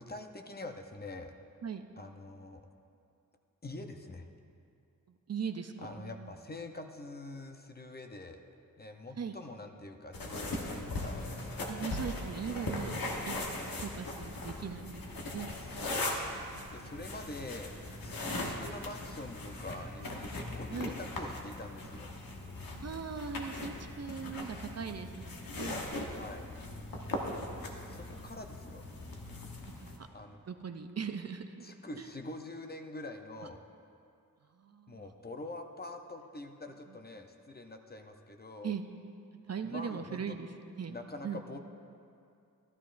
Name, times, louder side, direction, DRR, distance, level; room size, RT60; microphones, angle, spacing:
voice 1, 0.0-1.3 2.0-2.6 3.6-4.3 5.8-8.4 8.8-11.2 15.7-16.3 16.7-17.7 18.0-22.1 26.1-26.5 27.9-28.8 30.1-30.4 31.6-33.6 34.9-38.8 39.6-40.4 40.9-41.6, left 2 dB, 30° left, 5 dB, 0.6 m, -45 dB
voice 2, 5.1-6.3 9.1-9.3 11.7-15.5 20.7-20.9 22.7-25.8 29.8-30.1 30.5-32.1 34.5-35.1 38.6-38.8 39.5-41.0 41.2-41.4, right 6 dB, 50° right, 7 dB, 0.5 m, -40 dB
sound 1, 10.1-30.0, left 2 dB, 85° left, 1.1 m, -39 dB
13.5 x 12.5 x 2.5 m, 2.5 s
wide cardioid pair, 95°, 34 cm